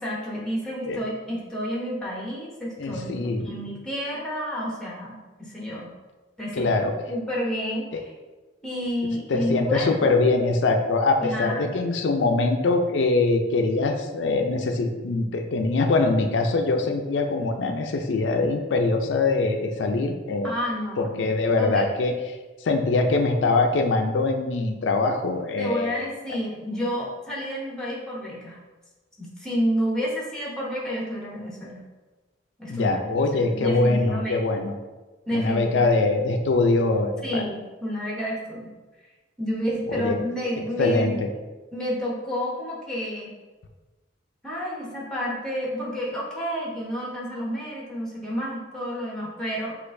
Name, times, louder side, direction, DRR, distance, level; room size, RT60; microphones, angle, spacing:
voice 1, 0.0-5.9 6.4-6.7 7.1-8.1 8.6-10.1 11.2-11.7 20.4-21.3 21.6-21.8 25.6-28.6 29.2-31.8 32.6-34.5 35.3-36.0 37.2-38.7 39.4-41.2 41.7-43.3 44.4-49.8, equal, 5° left, -4 dB, 0.9 m, -30 dB
voice 2, 2.8-3.5 6.5-6.9 7.9-8.0 9.3-20.5 21.0-22.1 22.6-26.0 32.7-34.7 35.3-37.4 39.9-40.2 40.8-41.3, left 3 dB, 90° left, 4 dB, 0.4 m, -23 dB
6.4 x 2.5 x 2.6 m, 1.2 s
head